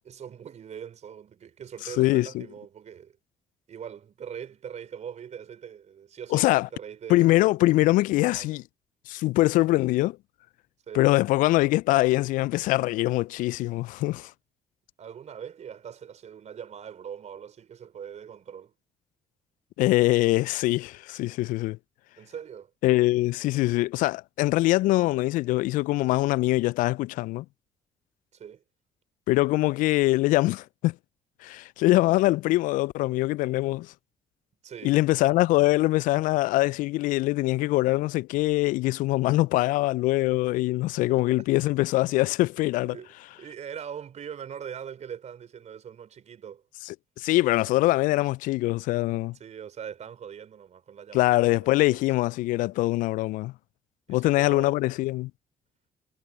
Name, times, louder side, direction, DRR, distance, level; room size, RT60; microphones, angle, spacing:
voice 1, 0.0-3.2 3.7-7.5 8.2-8.6 10.9-11.1 15.0-18.7 22.2-22.7 28.3-28.6 34.6-35.0 41.2-41.3 42.9-46.6 49.4-52.0 54.1-54.8, right 8 dB, 50° right, 4.5 m, -42 dB
voice 2, 2.0-2.4 6.3-6.7 7.1-8.6 9.1-10.2 10.9-14.3 19.8-21.8 22.8-27.4 29.3-30.9 31.4-33.9 34.8-43.0 46.9-49.3 51.1-53.5 54.1-55.3, left 18 dB, 65° left, 0.5 m, -23 dB
hypercardioid pair, 50°, 15 cm